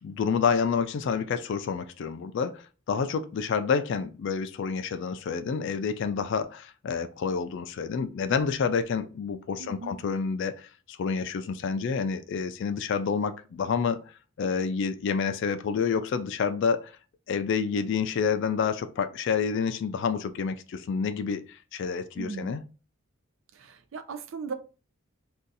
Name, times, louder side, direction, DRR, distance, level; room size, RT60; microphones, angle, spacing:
voice 1, 0.0-14.0 14.4-16.9 17.3-22.6, left 6 dB, 60° left, 0.3 m, -28 dB
voice 2, 9.6-10.0 22.2-22.5 23.5-24.5, right 4 dB, 70° right, 0.4 m, -37 dB
2.6 x 2.4 x 3.8 m
head